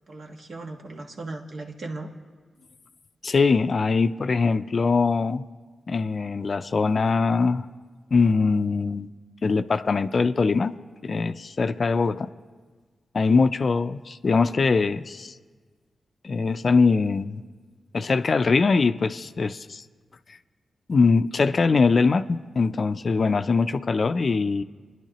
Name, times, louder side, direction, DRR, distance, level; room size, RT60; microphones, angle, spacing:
voice 1, 0.1-2.1, right 2 dB, 65° right, 2 dB, 1.4 m, -37 dB
voice 2, 3.2-5.4 5.9-7.7 8.1-9.1 9.4-10.7 11.0-12.3 13.1-15.3 16.2-17.4 17.9-19.8 20.9-24.6, left 4 dB, 55° left, 12 dB, 0.4 m, -22 dB
25.5 x 10.5 x 3.0 m, 1.4 s
supercardioid pair, 45°, 0 cm